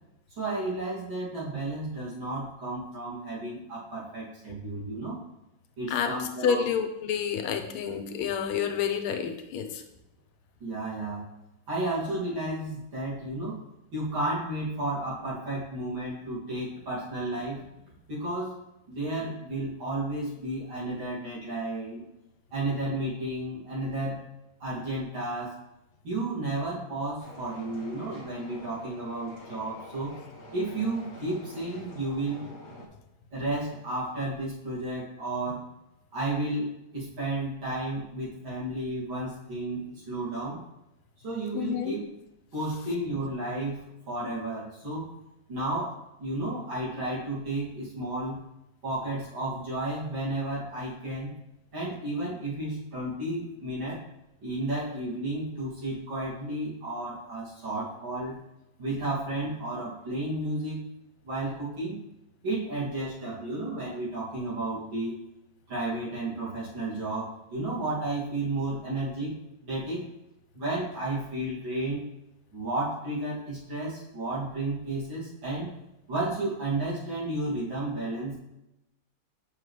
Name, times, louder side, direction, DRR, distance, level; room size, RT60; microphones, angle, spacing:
voice 1, 0.4-5.2 5.8-6.7 10.6-11.2 11.7-13.6 13.9-17.6 18.1-18.6 18.9-22.0 22.5-24.2 24.6-25.5 26.0-30.2 30.5-32.4 33.3-35.6 36.1-40.6 41.2-42.1 42.5-45.1 45.5-48.4 48.8-51.3 51.7-54.0 54.4-58.4 58.8-60.8 61.2-62.0 62.4-65.2 65.7-69.3 69.6-70.0 70.5-72.0 72.5-75.7 76.1-78.4, right 2 dB, 65° right, -8 dB, 3.1 m, -32 dB
voice 2, 6.4-9.8 41.5-42.0, left 7 dB, 85° left, 7 dB, 1.5 m, -29 dB
sound 1, 27.2-32.9, left 1 dB, 40° left, 1.2 m, -46 dB
7.1 x 5.7 x 3.2 m, 0.90 s
omnidirectional pair, 2.3 m